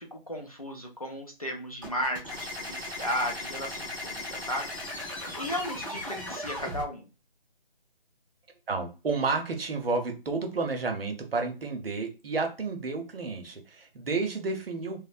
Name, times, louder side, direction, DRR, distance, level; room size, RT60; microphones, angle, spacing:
voice 1, 0.0-5.0 5.3-7.0, equal, 40° left, 1 dB, 0.4 m, -35 dB
sound 1, 1.8-6.8, left 1 dB, 20° right, 0.6 m, -37 dB
voice 2, 8.7-15.0, right 4 dB, 70° right, 4 dB, 0.7 m, -31 dB
2.6 x 2.0 x 2.4 m, 0.30 s
figure-of-eight pair, 175°, 30 cm